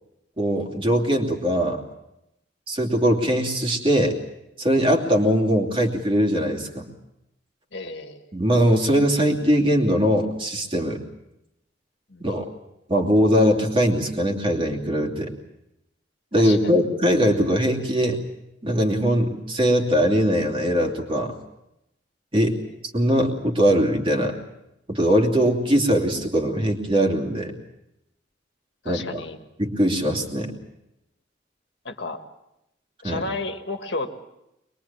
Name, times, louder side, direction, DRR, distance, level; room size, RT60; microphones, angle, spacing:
voice 1, 0.4-1.8 2.7-4.2 4.6-6.8 8.3-11.0 12.2-12.5 12.9-15.3 16.3-18.2 18.6-21.4 22.3-22.6 22.9-24.4 24.9-27.5 28.8-29.2 29.6-30.5 33.0-33.2, equal, 30° right, 1 dB, 2.8 m, -21 dB
voice 2, 7.7-8.2 12.1-12.3 16.3-16.7 28.8-29.4 31.9-32.2 33.0-34.1, left 3 dB, 65° left, 5 dB, 1.9 m, -32 dB
23.0 x 22.0 x 7.2 m, 0.87 s
head